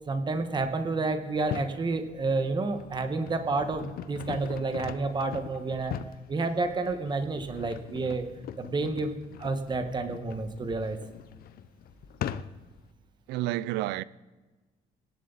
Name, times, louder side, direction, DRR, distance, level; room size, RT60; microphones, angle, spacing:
voice 1, 0.1-6.0 6.3-8.3 8.6-11.0, right 3 dB, 25° right, 1.4 m, -30 dB
sound 1, 1.3-1.8 2.5-12.8, left 10 dB, 60° left, 0.7 m, -41 dB
voice 2, 13.3-14.0, right 15 dB, 90° right, 0.5 m, -30 dB
25.0 x 11.0 x 4.1 m
cardioid pair, 110°, 17 cm